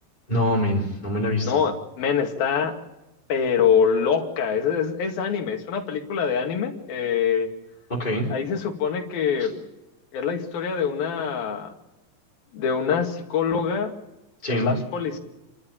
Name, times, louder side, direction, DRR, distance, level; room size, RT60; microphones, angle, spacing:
voice 1, 0.3-1.6 7.9-8.2 9.4-9.5 14.4-14.7, left 1 dB, 10° left, -5 dB, 3.1 m, -24 dB
voice 2, 1.4-2.7 3.3-7.5 8.3-9.6 10.1-11.7 12.5-13.9 14.5-15.2, left 7 dB, 55° left, 3 dB, 3.7 m, -24 dB
29.0 x 12.5 x 8.9 m, 0.99 s
omnidirectional pair, 5.7 m